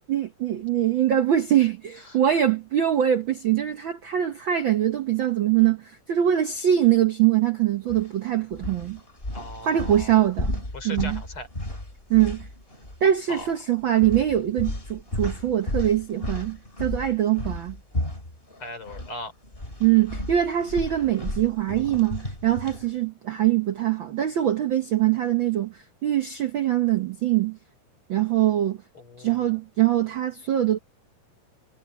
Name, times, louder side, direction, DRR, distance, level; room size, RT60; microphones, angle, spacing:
voice 1, 0.1-9.0 9.6-11.2 12.1-12.5 13.0-17.8 19.8-27.6 28.1-28.8 29.2-30.8, right 11 dB, 80° right, 1.1 m, -23 dB
sound 1, 7.9-8.1 8.5-13.0 13.3-13.5 14.0-19.1 19.4-22.9, left 1 dB, 15° left, 5.4 m, -33 dB
voice 2, 9.3-10.2 10.7-11.5 13.3-13.5 18.6-19.3 29.0-29.6, left 2 dB, 40° left, 5.3 m, -38 dB
omnidirectional pair, 3.7 m